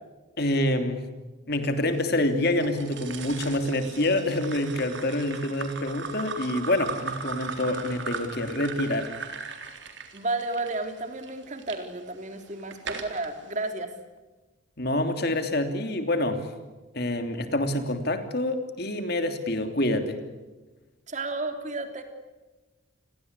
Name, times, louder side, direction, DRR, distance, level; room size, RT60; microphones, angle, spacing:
voice 1, 0.4-1.0 1.5-9.1 14.8-16.4 16.9-20.2, left 1 dB, 50° left, 7 dB, 3.1 m, -27 dB
sound 1, 2.6-11.8 12.3-13.3, right 5 dB, 60° right, 3.7 m, -38 dB
voice 2, 10.1-13.9 21.1-22.0, right 2 dB, 35° right, 6 dB, 3.3 m, -32 dB
30.0 x 22.5 x 8.3 m, 1.2 s
head